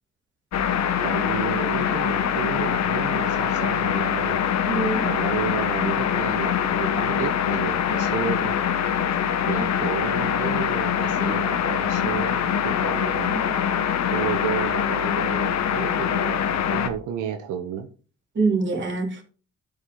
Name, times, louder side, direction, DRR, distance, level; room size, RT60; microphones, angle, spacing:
sound 1, 0.5-16.9, left 8 dB, 65° left, 1.1 m, -24 dB
voice 1, 1.0-4.4 5.0-8.6 9.5-13.4 14.1-17.9, right 9 dB, 85° right, 6 dB, 1.0 m, -32 dB
voice 2, 4.6-5.1 13.3-13.6 18.3-19.2, right 4 dB, 40° right, 2 dB, 3.3 m, -25 dB
12.5 x 5.2 x 3.8 m, 0.37 s
cardioid pair, 90°, 30 cm